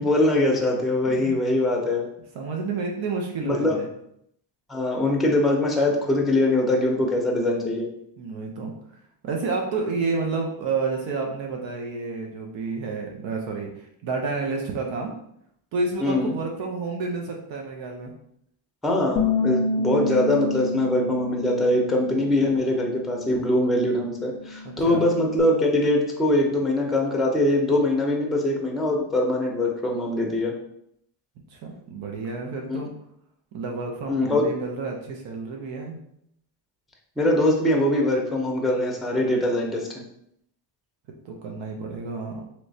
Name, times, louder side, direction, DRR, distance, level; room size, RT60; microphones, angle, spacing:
voice 1, 0.0-2.1 3.4-3.8 4.7-7.9 16.0-16.3 18.8-30.5 32.7-32.8 34.1-34.4 37.2-39.9, left 1 dB, ahead, 0 dB, 0.6 m, -22 dB
voice 2, 1.1-1.4 2.3-3.9 8.2-8.7 9.2-15.2 15.7-18.1 24.6-25.0 31.5-32.9 33.5-36.0 41.2-42.4, right 4 dB, 70° right, 1 dB, 0.7 m, -30 dB
Bass guitar, 19.2-25.4, left 2 dB, 45° left, 0.4 m, -29 dB
3.2 x 3.0 x 2.7 m, 0.73 s
cardioid pair, 100°, 48 cm